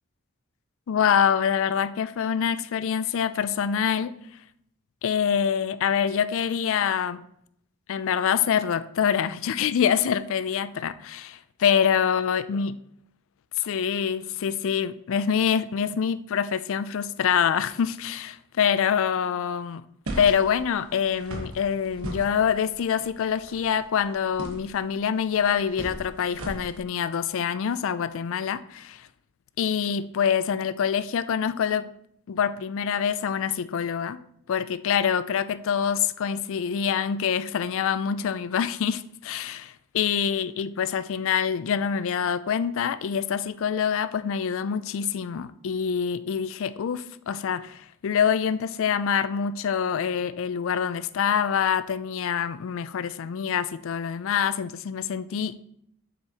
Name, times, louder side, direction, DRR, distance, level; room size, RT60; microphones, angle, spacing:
voice 1, 0.9-4.1 5.0-7.2 7.9-12.7 13.6-19.8 20.2-29.1 29.6-31.9 32.3-34.2 34.5-55.6, left 7 dB, 65° left, 0.4 m, -25 dB
sound 1, 20.1-26.8, right 1 dB, 85° right, 1.3 m, -39 dB
7.8 x 6.1 x 2.9 m
head